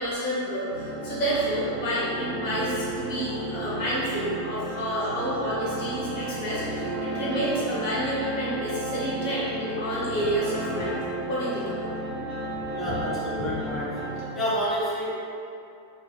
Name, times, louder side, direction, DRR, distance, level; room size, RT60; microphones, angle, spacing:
voice 1, 0.0-10.9 11.3-11.9, right 1 dB, 50° left, -8 dB, 1.0 m, -29 dB
sound 1, 0.7-14.3, right 1 dB, 40° right, 0.7 m, -33 dB
voice 2, 12.7-14.0 14.3-15.1, equal, 20° left, -6 dB, 0.6 m, -28 dB
2.9 x 2.5 x 2.7 m, 2.6 s
figure-of-eight pair, 90°, 0 cm